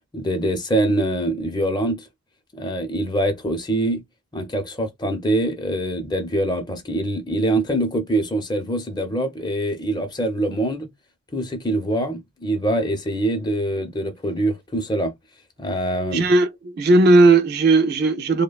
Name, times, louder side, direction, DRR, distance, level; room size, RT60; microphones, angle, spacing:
voice 1, 0.1-2.1 2.5-4.0 4.3-10.9 11.3-15.1 15.6-16.2, right 1 dB, 20° left, 0.6 m, -24 dB
voice 2, 16.1-18.4, right 2 dB, 55° right, 0.4 m, -16 dB
3.1 x 2.1 x 2.3 m
head